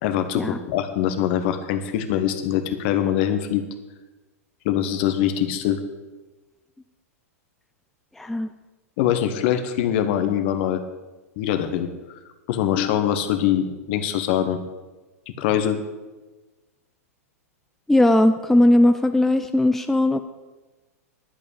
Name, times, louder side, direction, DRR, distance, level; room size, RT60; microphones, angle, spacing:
voice 1, 0.0-3.6 4.6-5.8 9.0-10.8 11.4-11.9 12.5-14.6 15.4-15.8, left 10 dB, 45° left, 8 dB, 1.3 m, -23 dB
voice 2, 8.2-8.5 17.9-20.2, left 1 dB, 5° left, 8 dB, 0.4 m, -18 dB
11.5 x 8.7 x 6.7 m, 1.2 s
figure-of-eight pair, 95°, 8 cm